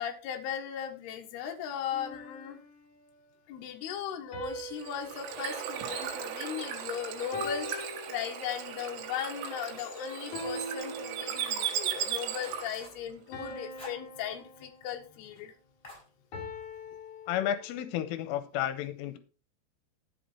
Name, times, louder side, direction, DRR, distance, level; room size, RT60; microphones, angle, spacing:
voice 1, 0.0-2.6 3.5-15.5, left 9 dB, 65° left, 3 dB, 3.0 m, -37 dB
sound 1, 1.9-3.1 4.3-6.8 7.3-8.8 10.3-11.8 13.3-15.2 16.3-18.0, left 1 dB, 45° left, 3.4 m, -43 dB
Bird / Water, 4.5-12.9, right 9 dB, 75° right, 3.9 m, -37 dB
sound 2, 6.6-7.5 7.9-11.2 11.5-11.6 12.0-12.1 12.4-13.1 13.5-14.6 14.8-14.9 15.2-15.4 15.8-16.7, left 2 dB, 10° left, 5.9 m, -54 dB
voice 2, 17.3-19.2, left 11 dB, 90° left, 12 dB, 3.3 m, -32 dB
11.5 x 7.9 x 4.3 m, 0.34 s
omnidirectional pair, 5.7 m